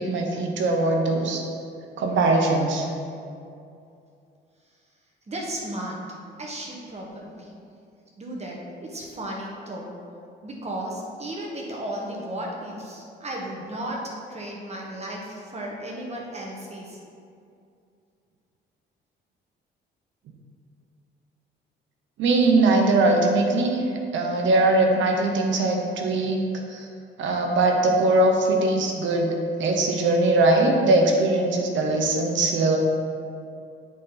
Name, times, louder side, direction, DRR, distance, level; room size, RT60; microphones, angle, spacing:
voice 1, 0.0-1.4 2.0-2.9 20.3-20.4 22.2-26.4 26.7-26.9 27.2-32.8, right 2 dB, 70° right, 2 dB, 1.0 m, -21 dB
voice 2, 5.3-6.0 6.4-7.6 8.2-9.9 10.4-17.0, right 1 dB, 35° right, -2 dB, 1.4 m, -34 dB
8.2 x 4.0 x 4.0 m, 2.5 s
cardioid pair, 90°, 20 cm